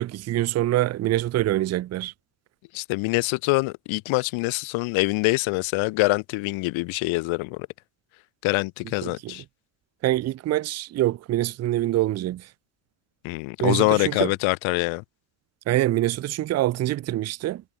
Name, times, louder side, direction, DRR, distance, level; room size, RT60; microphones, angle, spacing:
voice 1, 0.0-2.1 9.0-9.3 10.0-12.5 13.6-14.3 15.7-17.6, right 14 dB, 35° right, 0.4 m, -25 dB
voice 2, 2.7-7.7 8.4-9.4 13.2-15.0, left 25 dB, 85° left, 0.8 m, -24 dB
cardioid pair, 140°, 46 cm